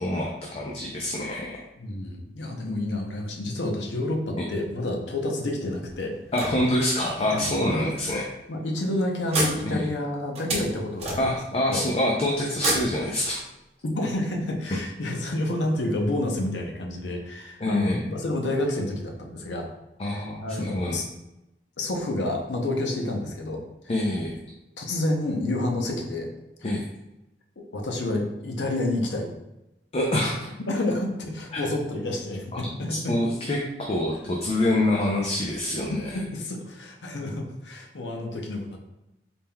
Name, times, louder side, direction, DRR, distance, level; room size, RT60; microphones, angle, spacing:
voice 1, 0.0-1.6 6.3-8.2 9.7-9.9 11.2-13.4 17.6-18.0 20.0-21.0 23.9-24.3 26.6-26.8 29.9-30.5 31.5-31.6 32.5-32.6 32.9-36.2, left 1 dB, 35° left, -1 dB, 0.4 m, -26 dB
voice 2, 1.8-6.2 7.3-7.5 7.8-7.9 8.5-11.4 11.7-11.8 13.8-19.7 20.0-21.1 21.8-23.6 24.8-26.3 26.6-26.8 27.6-29.3 30.6-33.1 35.9-38.8, left 1 dB, 90° left, 2 dB, 0.7 m, -29 dB
sound 1, 5.8-7.2 7.9-8.0 8.4-8.5 9.3-11.6 12.5-13.7, right 2 dB, 35° right, 0.9 m, -31 dB
4.1 x 3.5 x 2.2 m, 0.93 s
head